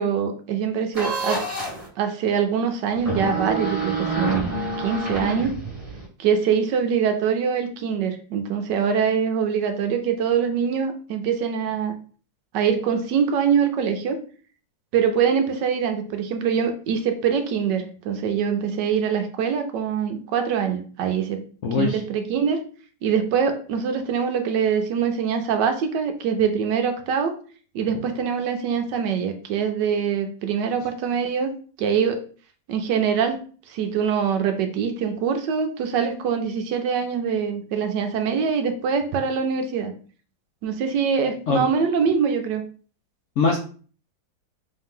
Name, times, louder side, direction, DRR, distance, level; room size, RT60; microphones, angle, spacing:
voice 1, 0.0-1.4 2.0-4.5 4.8-5.5 6.2-11.9 12.5-14.2 14.9-21.4 21.8-22.6 23.0-27.3 27.7-31.5 31.8-32.2 32.7-33.4 33.7-39.9 40.6-42.6, right 7 dB, 75° right, 6 dB, 1.2 m, -23 dB
sound 1, 0.9-1.9 3.0-6.1, right 2 dB, 20° right, 1.5 m, -27 dB
voice 2, 21.6-22.0 41.5-41.6 43.4-43.6, left 4 dB, 80° left, 0 dB, 0.6 m, -21 dB
3.8 x 2.8 x 3.6 m, 0.41 s
omnidirectional pair, 2.1 m